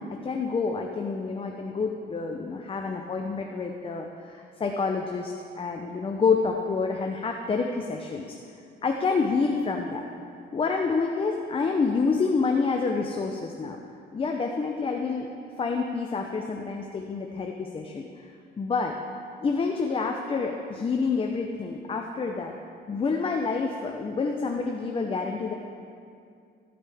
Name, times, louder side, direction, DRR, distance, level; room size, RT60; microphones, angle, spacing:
voice 1, 0.0-8.4 8.8-10.1 10.5-13.8 14.1-15.3 15.6-18.0 18.6-19.0 19.4-22.5 22.9-25.5, left 4 dB, 30° left, 2 dB, 0.7 m, -28 dB
14.5 x 8.7 x 3.5 m, 2.4 s
cardioid pair, 115°, 19 cm